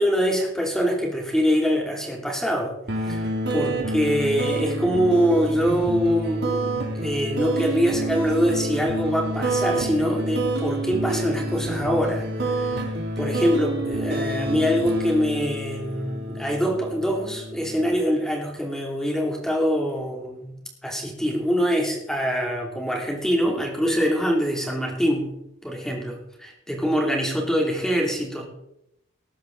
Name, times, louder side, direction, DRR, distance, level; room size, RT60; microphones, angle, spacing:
voice 1, 0.0-2.7 3.0-12.9 13.2-20.5 20.8-25.3 25.6-28.4, equal, 5° left, 0 dB, 3.0 m, -24 dB
sound 1, 2.9-18.0, right 1 dB, 55° right, 2.7 m, -28 dB
19.0 x 9.5 x 4.0 m, 0.81 s
head